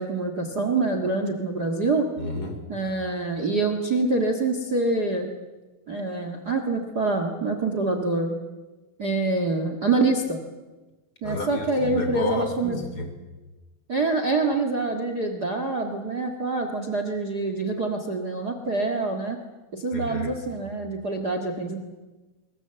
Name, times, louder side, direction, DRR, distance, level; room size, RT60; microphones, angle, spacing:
voice 1, 0.0-2.1 2.7-5.3 5.9-8.3 9.0-10.4 11.2-12.8 13.9-19.4 19.7-21.8, right 3 dB, 40° right, 6 dB, 1.5 m, -26 dB
voice 2, 2.2-2.6 11.2-13.1 19.9-20.3, left 2 dB, 25° left, 6 dB, 3.7 m, -30 dB
23.5 x 21.5 x 8.1 m, 1.2 s
omnidirectional pair, 4.5 m